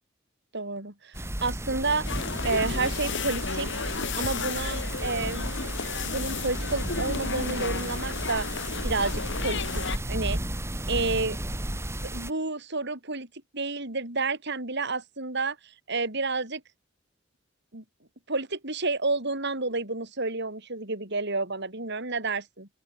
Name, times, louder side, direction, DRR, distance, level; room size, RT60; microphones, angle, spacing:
voice 1, 0.5-2.1 2.4-3.7 4.2-5.7 6.1-10.4 10.9-11.4 11.7-13.3 13.5-16.6 17.7-17.8 18.3-22.7, right 3 dB, 60° right, 7.2 m, -30 dB
sound 1, 1.1-12.3, right 1 dB, 15° right, 1.7 m, -33 dB
sound 2, 2.0-10.0, left 5 dB, 65° left, 2.0 m, -33 dB
open air
head